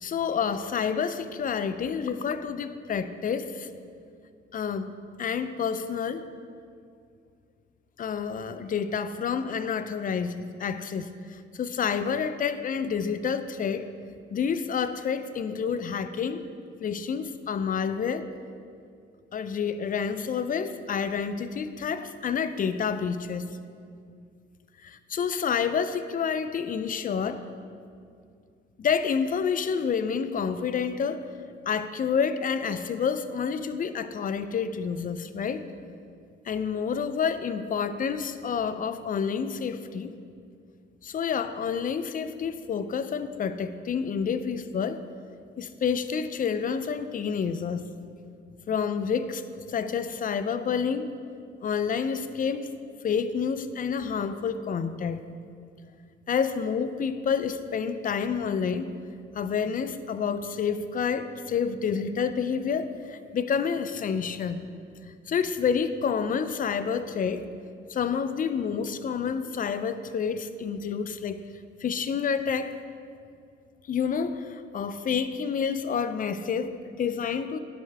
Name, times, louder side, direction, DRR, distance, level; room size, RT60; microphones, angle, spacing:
voice 1, 0.0-3.7 4.5-4.9 5.2-6.2 8.0-13.9 14.3-16.4 16.8-18.3 19.3-23.5 24.8-27.5 28.8-31.3 31.7-35.6 36.5-40.1 41.0-45.0 45.6-47.9 48.7-51.1 51.6-52.7 53.0-55.2 56.3-58.9 59.3-64.6 65.3-67.4 67.9-71.4 71.8-72.7 73.9-77.6, left 6 dB, 45° left, 12 dB, 0.5 m, -29 dB
11.0 x 7.3 x 3.4 m, 2.3 s
cardioid pair, 90°, 20 cm